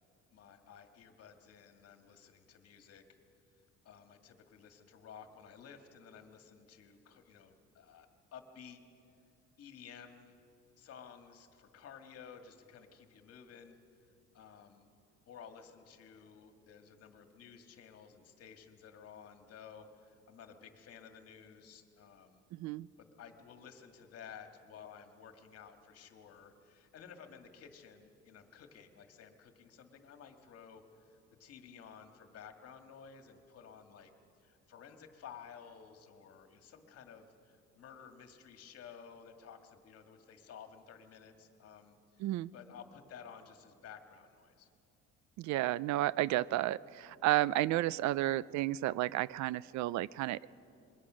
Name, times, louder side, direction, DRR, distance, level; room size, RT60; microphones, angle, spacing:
voice 1, 0.3-3.0 3.8-8.8 9.6-10.4 10.8-13.8 14.3-14.9 15.3-22.4 23.0-34.1 34.4-42.3 42.5-44.7, left 7 dB, 50° left, 6 dB, 1.9 m, -54 dB
voice 2, 22.5-22.9 42.2-42.5 45.4-50.4, right 15 dB, 65° right, 21 dB, 0.5 m, -32 dB
27.0 x 22.0 x 6.3 m, 2.6 s
cardioid pair, 155°, 30 cm